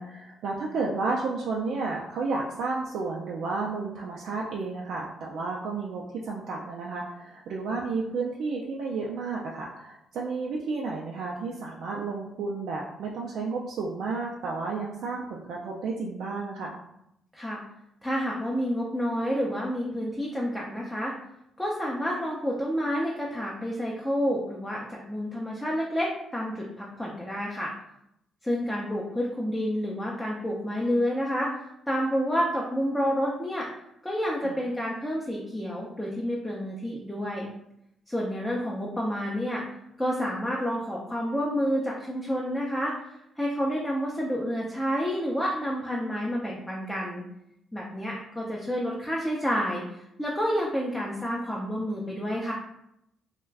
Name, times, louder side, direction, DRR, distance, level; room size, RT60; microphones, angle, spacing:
voice 1, 0.0-16.8 34.4-34.6, right 3 dB, 75° right, -2 dB, 0.3 m, -32 dB
voice 2, 17.3-17.6 18.0-21.1 21.6-27.7 28.4-31.6 31.9-33.7 34.0-37.5 38.1-39.6 40.0-47.2 47.7-52.5, equal, 5° left, -4 dB, 0.5 m, -29 dB
2.3 x 2.1 x 3.3 m, 0.80 s
cardioid pair, 90°, 0 cm